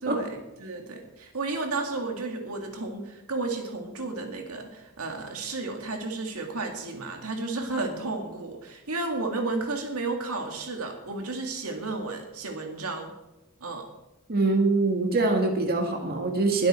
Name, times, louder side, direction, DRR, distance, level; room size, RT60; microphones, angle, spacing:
voice 1, 0.0-13.1 13.6-13.9, right 3 dB, 80° right, 3 dB, 2.1 m, -32 dB
voice 2, 14.3-16.7, right 3 dB, 45° right, 2 dB, 1.8 m, -24 dB
21.0 x 8.2 x 4.4 m, 0.98 s
head